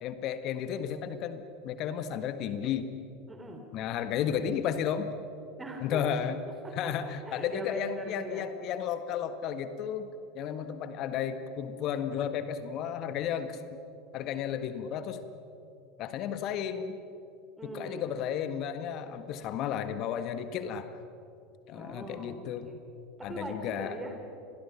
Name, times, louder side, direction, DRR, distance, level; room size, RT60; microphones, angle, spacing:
voice 1, 0.0-2.9 3.7-5.1 5.8-6.4 6.7-13.6 14.1-15.2 16.0-17.0 17.6-20.9 21.7-22.7 23.2-24.0, left 8 dB, 45° left, 10 dB, 1.7 m, -33 dB
voice 2, 3.3-3.7 5.6-6.1 6.6-8.5 17.6-18.1 21.7-22.4 22.6-22.8 23.2-24.4, right 1 dB, 15° right, 3 dB, 3.5 m, -41 dB
29.0 x 22.5 x 5.9 m, 2.7 s
figure-of-eight pair, 80°, 0 cm